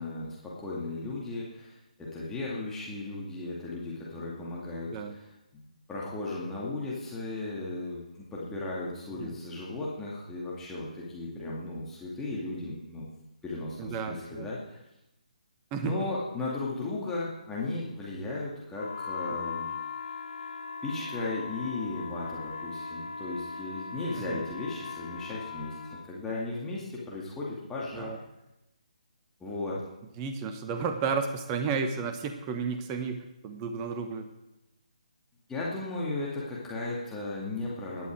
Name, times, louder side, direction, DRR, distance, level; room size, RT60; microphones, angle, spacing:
voice 1, 0.0-13.1 13.4-14.8 15.8-19.7 20.8-28.1 29.4-29.8 35.5-38.1, left 2 dB, 10° left, -6 dB, 2.4 m, -36 dB
voice 2, 13.8-14.5 15.7-15.9 24.2-24.4 27.9-28.2 30.2-34.3, right 5 dB, 20° right, 6 dB, 1.2 m, -32 dB
sound 1, 18.7-26.0, left 5 dB, 60° left, 3.2 m, -39 dB
17.0 x 11.0 x 4.8 m, 0.92 s
figure-of-eight pair, 140°, 4 cm